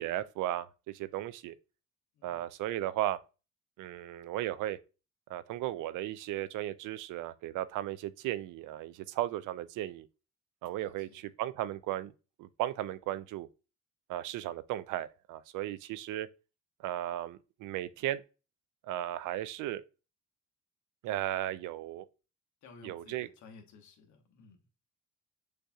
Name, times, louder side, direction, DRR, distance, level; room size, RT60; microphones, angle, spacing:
voice 1, 0.0-1.5 2.2-3.2 3.8-4.8 5.3-10.1 10.6-12.1 12.4-13.5 14.1-16.3 16.8-18.2 18.8-19.8 21.0-22.1 22.8-23.3, right 13 dB, 85° right, 0.5 m, -35 dB
voice 2, 2.1-2.5 10.8-11.3 22.6-24.7, left 4 dB, 75° left, 1.2 m, -55 dB
6.5 x 2.7 x 2.3 m
cardioid pair, 90°, 30 cm